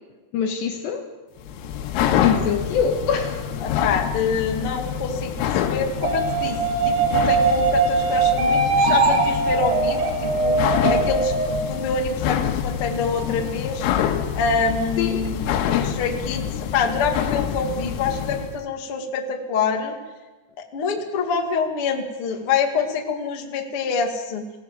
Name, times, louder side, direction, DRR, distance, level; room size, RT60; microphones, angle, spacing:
voice 1, 0.3-1.1 2.2-3.7 15.0-15.3, left 6 dB, 70° left, 5 dB, 3.0 m, -24 dB
sound 1, 1.4-18.6, left 9 dB, 90° left, 4.1 m, -26 dB
voice 2, 3.6-5.3 5.6-10.6 10.9-13.9 14.4-15.4 15.7-20.0 20.7-24.5, left 5 dB, 45° left, 2 dB, 1.9 m, -26 dB
sound 2, 6.0-11.5, right 4 dB, 60° right, 4.3 m, -21 dB
25.0 x 17.0 x 7.6 m, 1.2 s
omnidirectional pair, 5.9 m